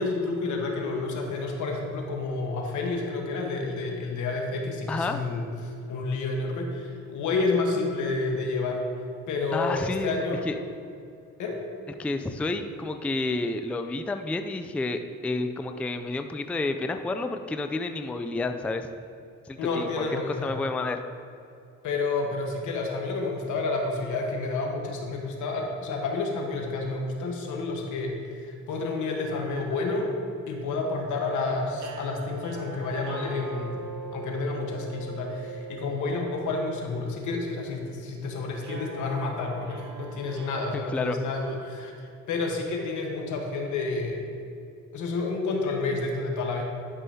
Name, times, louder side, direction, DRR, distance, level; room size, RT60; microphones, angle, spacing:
voice 1, 0.0-8.8 9.3-10.4 11.4-11.6 19.6-20.6 21.8-30.1 30.5-33.8 34.1-41.9 42.3-44.3 44.9-46.6, left 3 dB, 80° left, 1 dB, 1.3 m, -30 dB
voice 2, 4.9-5.3 9.5-10.6 12.0-18.9 19.5-20.0 20.4-21.0 40.9-41.2, left 2 dB, 5° left, 7 dB, 0.3 m, -30 dB
sound 1, 31.8-42.0, right 4 dB, 75° right, 1.0 m, -42 dB
11.5 x 5.5 x 2.8 m, 2.5 s
cardioid pair, 90°, 30 cm